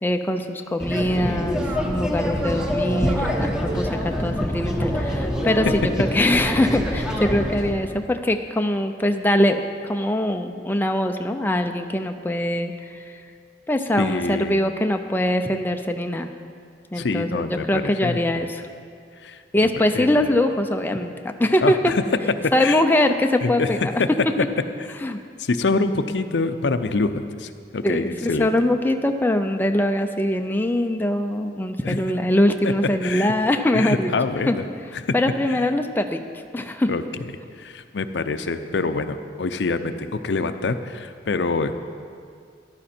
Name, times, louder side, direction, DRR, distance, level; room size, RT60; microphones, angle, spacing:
voice 1, 0.0-12.7 13.7-16.3 16.9-18.6 19.5-21.9 22.5-23.9 25.0-25.2 27.8-34.1 34.5-34.6 35.1-36.2 36.5-36.9, left 1 dB, 10° left, 5 dB, 0.5 m, -22 dB
sound 1, 0.8-7.7, equal, 5° right, 1.0 m, -25 dB
voice 2, 14.0-14.6 17.0-18.5 19.2-19.7 19.9-20.3 21.6-22.0 22.6-22.8 23.4-23.7 24.0-24.1 25.4-28.5 31.8-32.0 32.6-32.7 33.0-33.3 33.7-34.6 34.9-35.1 35.5-35.6 36.9-37.0 37.6-41.8, left 3 dB, 75° left, 9 dB, 0.6 m, -26 dB
14.0 x 11.5 x 4.4 m, 2.2 s
head